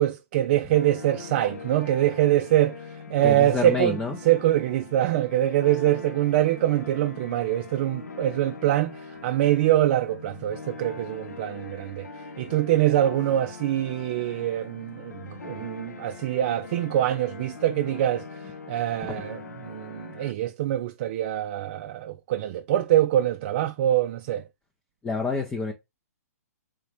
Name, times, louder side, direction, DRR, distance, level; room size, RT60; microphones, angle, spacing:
voice 1, 0.0-2.8 3.1-4.0 4.3-12.1 12.4-18.2 18.7-19.4 19.6-24.4, right 13 dB, 40° right, 0.4 m, -24 dB
sound 1, 0.7-20.3, left 4 dB, 80° left, 0.8 m, -42 dB
voice 2, 3.2-4.2 19.0-19.2 25.0-25.7, left 4 dB, 10° left, 0.6 m, -28 dB
3.5 x 2.8 x 3.3 m
hypercardioid pair, 140°, 9 cm